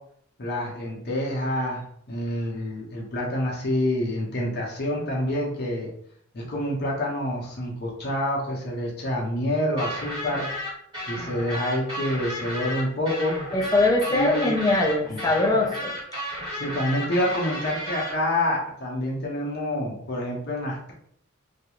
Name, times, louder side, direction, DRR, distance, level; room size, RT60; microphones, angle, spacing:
voice 1, 0.4-5.9 6.3-10.5 11.1-13.4 14.1-14.5 15.1-15.2 16.5-20.9, left 1 dB, 50° left, -2 dB, 0.6 m, -27 dB
sound 1, 9.8-18.1, equal, 20° right, 1.3 m, -33 dB
voice 2, 13.5-15.9, left 2 dB, 20° left, -1 dB, 0.4 m, -22 dB
2.3 x 2.0 x 2.9 m, 0.67 s
head